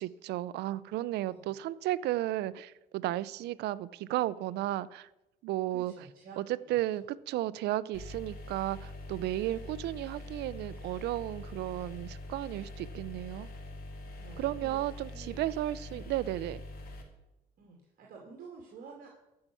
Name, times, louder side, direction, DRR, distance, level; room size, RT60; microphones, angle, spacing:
voice 1, 0.0-5.1 5.4-5.9 6.4-13.5 14.4-16.6, right 15 dB, 80° right, 18 dB, 0.6 m, -34 dB
voice 2, 5.7-6.4 6.7-6.8 14.1-14.8 15.1-15.4 15.9-16.1 17.6-19.1, right 5 dB, 55° right, -1 dB, 2.5 m, -50 dB
sound 1, 7.9-17.0, left 2 dB, 65° left, 2.7 m, -44 dB
13.5 x 5.7 x 8.4 m, 0.94 s
cardioid pair, 110°, 17 cm